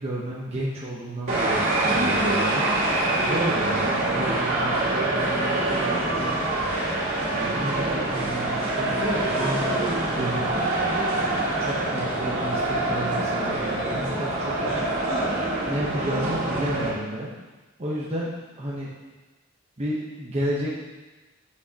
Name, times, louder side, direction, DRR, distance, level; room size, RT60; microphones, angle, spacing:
voice 1, 0.0-2.8 3.1-6.4 7.3-10.6 11.6-14.9 15.3-17.4 17.8-18.9 19.8-20.8, right 1 dB, 30° right, -6 dB, 0.9 m, -32 dB
sound 1, 1.3-16.9, right 2 dB, 85° right, 2.0 m, -25 dB
8.2 x 5.5 x 2.8 m, 1.2 s
head